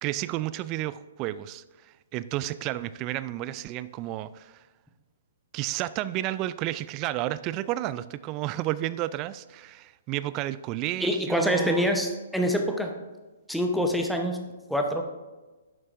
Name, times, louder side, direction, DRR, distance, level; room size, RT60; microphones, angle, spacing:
voice 1, 0.0-4.6 5.5-11.9, right 15 dB, 30° right, 16 dB, 0.3 m, -32 dB
voice 2, 11.0-13.0 13.5-14.4 14.7-15.0, equal, ahead, 3 dB, 0.8 m, -25 dB
11.0 x 7.8 x 2.6 m, 1.2 s
figure-of-eight pair, 120°, 0 cm